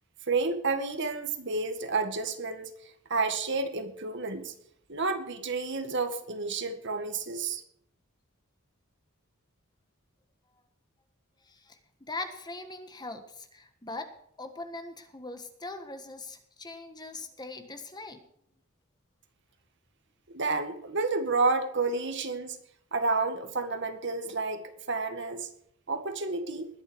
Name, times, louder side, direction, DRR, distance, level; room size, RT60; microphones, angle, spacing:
voice 1, 0.3-4.5 4.9-7.6 20.3-22.6 22.9-25.5 25.9-26.7, right 3 dB, 55° right, 7 dB, 1.9 m, -30 dB
voice 2, 11.4-11.8 12.1-14.1 14.4-18.2, left 2 dB, 20° left, 7 dB, 1.5 m, -41 dB
20.5 x 7.6 x 5.3 m, 0.71 s
head